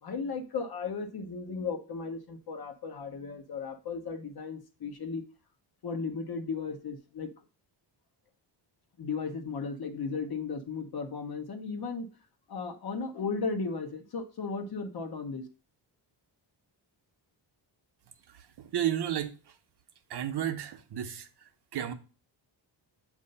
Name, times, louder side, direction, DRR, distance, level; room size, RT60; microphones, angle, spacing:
voice 1, 0.0-5.2 5.8-7.3 9.0-12.1 12.5-15.5, left 4 dB, 55° left, 1.0 m, -35 dB
voice 2, 18.3-19.6 20.1-21.9, right 10 dB, 60° right, 0.7 m, -33 dB
7.7 x 2.7 x 5.3 m
wide cardioid pair, 155°, 44 cm